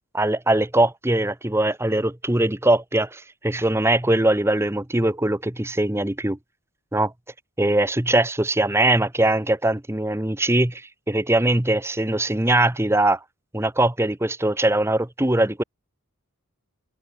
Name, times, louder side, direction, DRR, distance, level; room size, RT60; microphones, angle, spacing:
voice 1, 0.1-6.4 6.9-7.1 7.6-13.2 13.5-15.6, right 1 dB, 10° right, 0.8 m, -21 dB
head